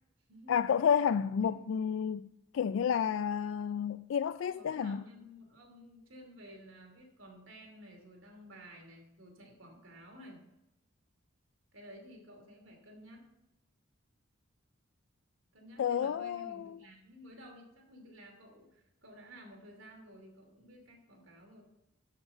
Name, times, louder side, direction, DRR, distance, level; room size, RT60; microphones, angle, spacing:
voice 1, 0.5-2.2 2.5-5.0 15.8-16.7, left 7 dB, 75° left, 0.3 m, -30 dB
voice 2, 4.4-10.4 11.7-13.3 15.5-21.6, equal, 80° right, 2.9 m, -53 dB
13.0 x 5.8 x 5.6 m
head